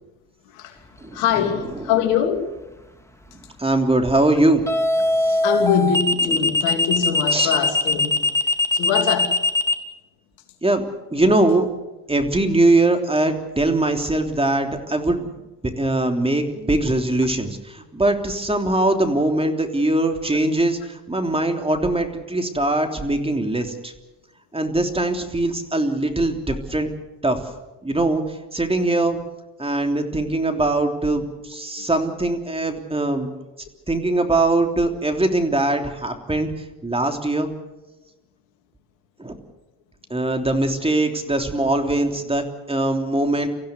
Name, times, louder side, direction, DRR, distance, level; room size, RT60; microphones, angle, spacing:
voice 1, 1.1-2.5 5.4-8.3 8.7-9.4 31.8-31.9, left 8 dB, 80° left, 2.9 m, -23 dB
sound 1, 1.4-1.7 4.7-9.7, left 2 dB, 5° left, 2.8 m, -20 dB
voice 2, 3.6-4.7 5.2-5.4 7.3-7.5 10.6-10.8 11.1-11.7 12.1-15.3 15.6-23.9 24.5-26.9 27.2-27.4 27.8-29.2 29.6-33.3 33.9-36.5 36.8-37.5 39.2-39.3 40.1-43.5, right 2 dB, 10° right, 3.3 m, -21 dB
25.0 x 15.5 x 8.2 m
hypercardioid pair, 70°, 48 cm